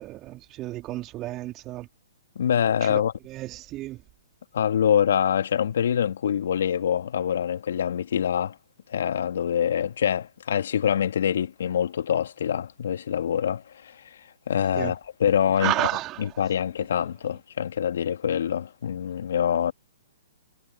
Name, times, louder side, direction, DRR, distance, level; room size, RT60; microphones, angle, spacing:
voice 1, 0.0-1.9 2.9-4.0 14.8-14.9 15.6-16.2, right 16 dB, 30° right, 3.3 m, -31 dB
voice 2, 2.4-3.1 4.5-8.6 8.9-14.0 14.5-15.9 16.2-19.7, left 9 dB, 65° left, 2.4 m, -25 dB
hypercardioid pair, 125°, 0 cm